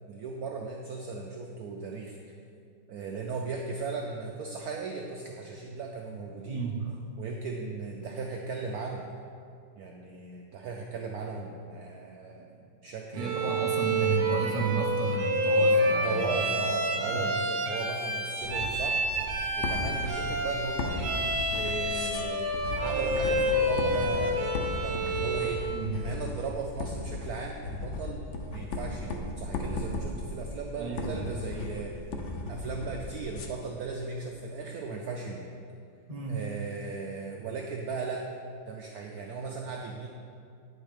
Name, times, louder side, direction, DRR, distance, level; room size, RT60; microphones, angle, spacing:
voice 1, 0.1-2.2 2.9-6.6 7.2-9.1 9.8-13.9 15.8-19.0 19.6-21.1 21.5-32.0 32.5-35.6 36.3-38.3 38.7-40.1, right 4 dB, 80° right, 1 dB, 0.8 m, -37 dB
voice 2, 6.5-7.0 13.1-16.5 17.0-17.3 25.7-26.0 30.7-31.3 36.1-36.4, right 3 dB, 25° right, -1 dB, 0.7 m, -32 dB
Bowed string instrument, 13.2-25.7, right 1 dB, 60° right, 1.5 m, -28 dB
sound 1, 18.4-33.5, left 2 dB, 85° left, 0.6 m, -36 dB
9.5 x 6.3 x 5.1 m, 2.5 s
omnidirectional pair, 2.3 m